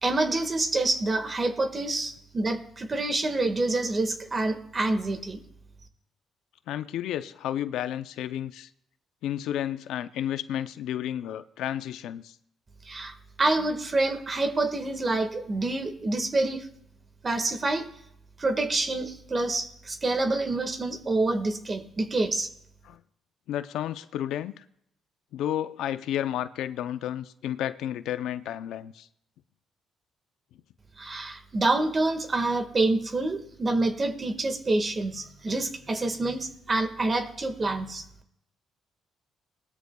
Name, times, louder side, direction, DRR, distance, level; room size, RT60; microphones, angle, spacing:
voice 1, 0.0-5.4 12.9-16.7 17.2-17.9 18.4-22.5 31.0-38.0, right 2 dB, 35° right, 1.7 m, -27 dB
voice 2, 6.7-8.7 9.2-12.3 22.8-23.0 23.5-24.6 25.3-29.1, left 11 dB, 85° left, 0.5 m, -32 dB
20.0 x 13.0 x 2.3 m
cardioid pair, 90°, 0 cm